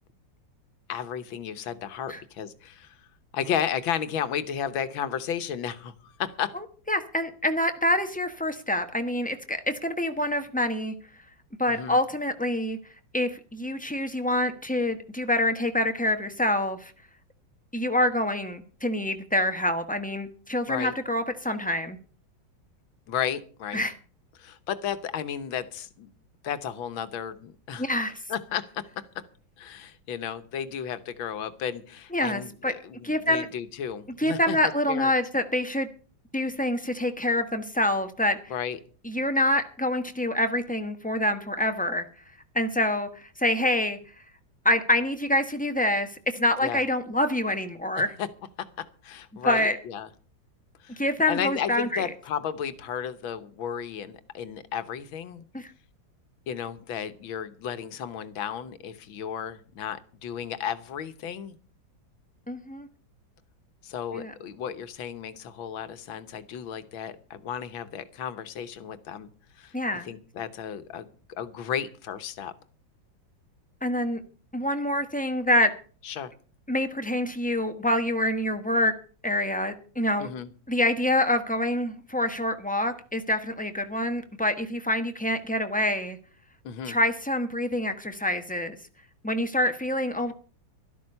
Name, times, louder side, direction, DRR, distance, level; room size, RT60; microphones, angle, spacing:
voice 1, 0.9-3.0 3.3-6.5 11.7-12.0 20.7-21.0 23.1-23.8 24.4-26.1 26.4-27.9 28.3-29.0 29.6-34.6 34.9-35.1 38.5-38.8 46.6-46.8 48.0-48.3 48.8-50.1 50.8-51.0 51.3-55.4 56.5-61.6 63.8-69.3 69.6-69.8 70.0-72.5 76.0-76.3 80.2-80.5 86.6-87.0, left 8 dB, 85° left, 11 dB, 1.8 m, -33 dB
voice 2, 6.5-10.9 11.6-12.8 13.1-16.9 17.7-22.0 23.7-23.9 27.8-28.1 32.1-32.7 33.0-33.5 34.2-35.9 36.3-38.4 39.0-42.1 42.5-44.0 44.6-48.1 49.4-49.8 51.0-52.0 55.5-55.7 62.5-62.9 64.1-64.3 69.7-70.1 73.8-74.2 74.5-75.7 76.7-78.9 79.2-80.3 80.7-86.2 86.9-88.8 89.2-90.3, left 1 dB, 5° left, 7 dB, 0.7 m, -26 dB
12.5 x 12.0 x 5.5 m, 0.40 s
omnidirectional pair, 2.1 m